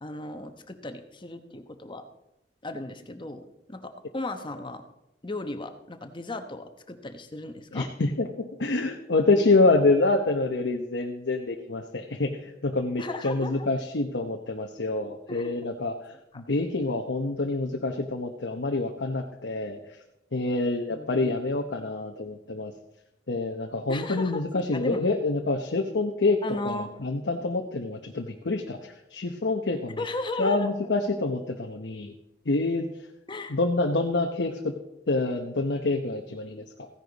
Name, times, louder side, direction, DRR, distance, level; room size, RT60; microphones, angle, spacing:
voice 1, 0.0-2.0 2.6-4.8 5.2-7.9 13.0-13.7 15.3-15.5 16.3-16.4 20.9-21.4 23.9-24.5 24.7-25.0 26.4-27.0 30.0-30.7 33.3-33.6, left 2 dB, 30° left, 7 dB, 1.0 m, -36 dB
voice 2, 7.7-19.8 20.3-22.7 23.3-28.8 29.1-30.0 30.4-32.1 32.5-32.9 33.5-34.8 35.1-36.9, left 2 dB, 90° left, 3 dB, 0.9 m, -27 dB
15.5 x 10.0 x 4.0 m, 0.86 s
head